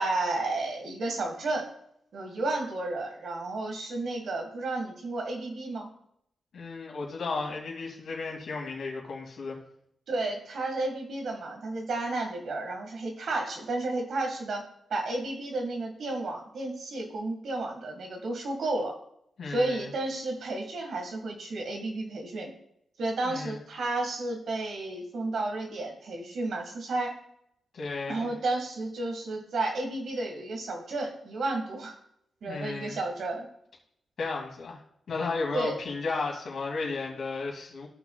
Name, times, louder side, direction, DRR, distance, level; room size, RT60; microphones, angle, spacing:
voice 1, 0.0-1.7 2.1-5.9 10.1-14.6 14.9-18.9 19.5-22.5 23.0-27.2 28.1-32.0 32.4-33.5 35.5-35.8, right 2 dB, 70° right, 3 dB, 1.8 m, -32 dB
voice 2, 6.5-9.6 19.4-19.9 23.2-23.6 27.7-28.3 32.4-33.0 34.2-34.8 35.1-37.9, left 3 dB, 70° left, -1 dB, 2.5 m, -34 dB
14.5 x 6.2 x 2.4 m, 0.74 s
supercardioid pair, 55°, 0 cm